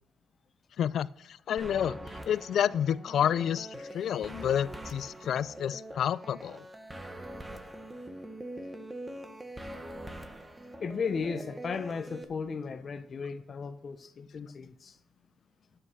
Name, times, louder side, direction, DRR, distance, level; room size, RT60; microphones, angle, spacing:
voice 1, 0.8-2.0 2.3-6.7, left 9 dB, 65° left, 0.4 m, -29 dB
sound 1, 1.6-12.2, right 1 dB, 15° right, 1.2 m, -43 dB
voice 2, 10.8-14.9, left 5 dB, 45° left, 0.8 m, -35 dB
9.5 x 7.9 x 6.2 m
cardioid pair, 90°, 0 cm